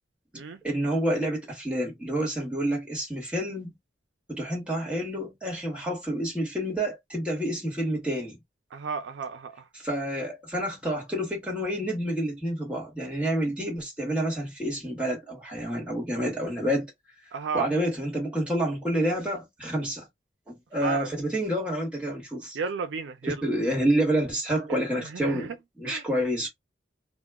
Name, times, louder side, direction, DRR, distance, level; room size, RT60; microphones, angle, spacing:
voice 1, 0.3-3.7 4.3-8.4 9.7-16.9 17.5-20.1 20.5-22.6 23.2-26.5, right 1 dB, 5° right, 1.1 m, -28 dB
voice 2, 8.7-9.6 17.3-17.7 20.8-21.1 22.5-23.4 24.7-24.8 25.1-25.6 25.9-26.0, right 5 dB, 85° right, 0.4 m, -33 dB
2.1 x 2.1 x 3.4 m
head